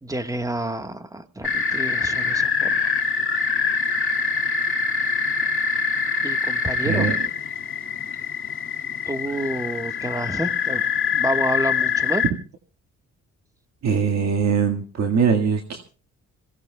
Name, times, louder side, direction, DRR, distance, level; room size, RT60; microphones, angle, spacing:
voice 1, 0.0-2.9 6.2-7.1 9.1-10.8 11.1-12.2, right 1 dB, 10° right, 9 dB, 1.4 m, -29 dB
sound 1, 1.4-12.3, left 5 dB, 40° left, 2.1 m, -24 dB
voice 2, 13.8-15.8, right 6 dB, 60° right, 3 dB, 1.8 m, -21 dB
26.0 x 17.5 x 2.2 m, 0.36 s
cardioid pair, 90°, 30 cm